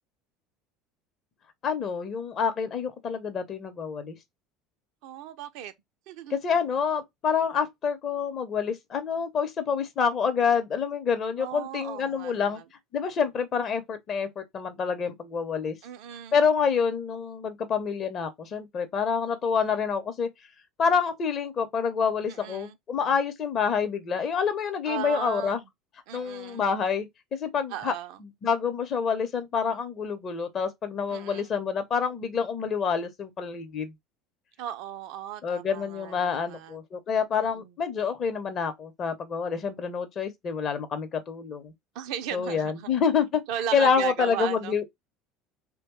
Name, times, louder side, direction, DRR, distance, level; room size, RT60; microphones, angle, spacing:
voice 1, 1.6-4.2 6.3-12.6 12.9-15.8 16.3-20.3 20.8-25.6 26.1-27.9 28.2-33.9 35.4-41.7 42.3-43.4 43.7-44.9, left 6 dB, 40° left, 0.7 m, -27 dB
voice 2, 5.0-5.7 6.1-6.4 11.4-12.6 15.8-16.4 22.3-22.8 24.9-25.6 26.1-26.6 27.7-28.2 31.1-31.5 34.6-36.8 37.3-37.7 41.9-42.9 43.5-44.8, right 11 dB, 55° right, 0.4 m, -36 dB
3.1 x 2.2 x 2.9 m
figure-of-eight pair, 65°, 0 cm